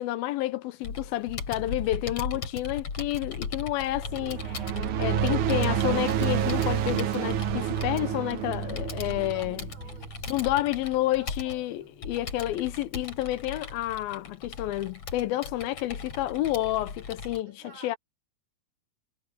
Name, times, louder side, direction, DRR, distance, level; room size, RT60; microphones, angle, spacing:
voice 1, 0.0-4.4 5.0-9.6 10.3-18.0, left 15 dB, 85° left, 2.7 m, -30 dB
Computer keyboard, 0.8-17.4, left 5 dB, 45° left, 4.2 m, -38 dB
sound 1, 3.9-10.6, right 10 dB, 65° right, 2.3 m, -29 dB
voice 2, 4.2-5.6 9.1-12.0 17.4-18.0, right 3 dB, 45° right, 6.6 m, -53 dB
omnidirectional pair, 4.2 m